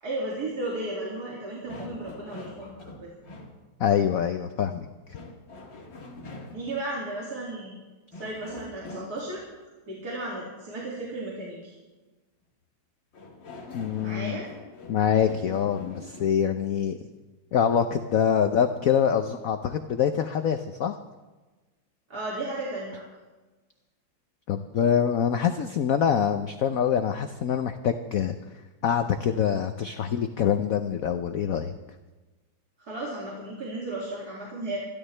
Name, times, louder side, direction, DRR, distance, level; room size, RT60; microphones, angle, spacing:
voice 1, 0.0-3.1 6.5-7.8 8.1-9.4 9.9-11.8 14.0-14.5 22.1-23.1 32.8-34.8, right 2 dB, 50° right, -5 dB, 2.9 m, -34 dB
sound 1, 1.7-3.6 5.1-6.8 8.1-9.4 13.1-16.4, left 3 dB, 60° left, 2.6 m, -43 dB
voice 2, 3.8-4.9 13.7-14.4 14.9-17.0 17.5-21.0 24.5-28.3 28.8-31.7, left 8 dB, 80° left, 8 dB, 0.7 m, -25 dB
25.5 x 12.0 x 3.3 m, 1.2 s
omnidirectional pair, 2.2 m